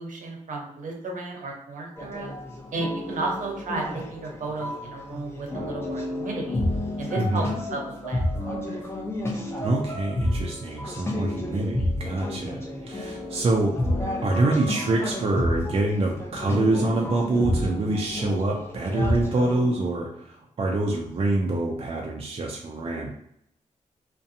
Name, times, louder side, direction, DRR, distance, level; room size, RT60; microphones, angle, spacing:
voice 1, 0.0-2.3 2.7-6.6 7.0-7.4 7.7-8.8, right 3 dB, 75° right, 0 dB, 0.8 m, -33 dB
sound 1, 2.0-19.6, left 1 dB, 20° left, 0.8 m, -30 dB
voice 2, 7.1-7.5 9.6-13.8 14.2-23.1, right 2 dB, 45° right, -1 dB, 0.5 m, -25 dB
2.5 x 2.2 x 2.7 m, 0.75 s
cardioid pair, 75°, 14 cm